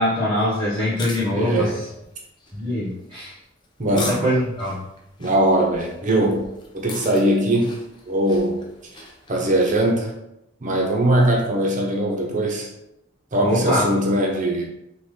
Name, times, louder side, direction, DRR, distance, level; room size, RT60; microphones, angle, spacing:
voice 1, 0.0-1.8 2.6-3.4 3.9-4.8 13.4-13.9, left 1 dB, 5° left, -14 dB, 1.3 m, -23 dB
sound 1, 0.8-9.8, left 3 dB, 25° left, 0.7 m, -40 dB
voice 2, 1.3-1.7 3.8-4.3 5.2-6.5 6.7-7.7 8.1-8.6 8.9-10.1 10.6-12.7 13.3-14.7, right 1 dB, 40° right, -1 dB, 1.0 m, -21 dB
5.6 x 2.6 x 3.3 m, 0.83 s
head